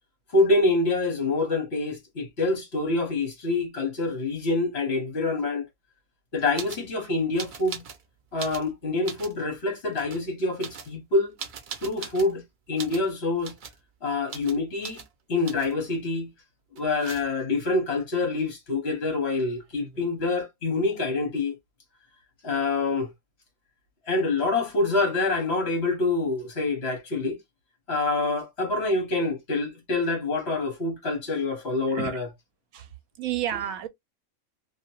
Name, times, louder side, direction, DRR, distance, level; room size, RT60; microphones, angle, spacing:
voice 1, 0.3-5.7 6.3-7.8 8.3-11.3 11.8-12.4 12.7-13.5 14.0-15.0 15.3-16.3 16.7-21.5 22.4-23.1 24.1-27.4 27.9-32.3, left 3 dB, 50° left, 1.2 m, -26 dB
sound 1, 6.6-6.9 7.4-8.0 8.3-9.4 9.9-10.2 10.6-12.4 12.8-13.1 13.4-13.8 14.3-14.6 14.8-15.1 15.5-15.8 16.8-17.5 19.3-19.4 19.6-20.2, right 6 dB, 60° right, 0.5 m, -40 dB
voice 2, 31.9-32.2 32.7-32.9 33.2-33.9, right 11 dB, 75° right, 1.0 m, -30 dB
2.8 x 2.6 x 2.9 m
omnidirectional pair, 1.5 m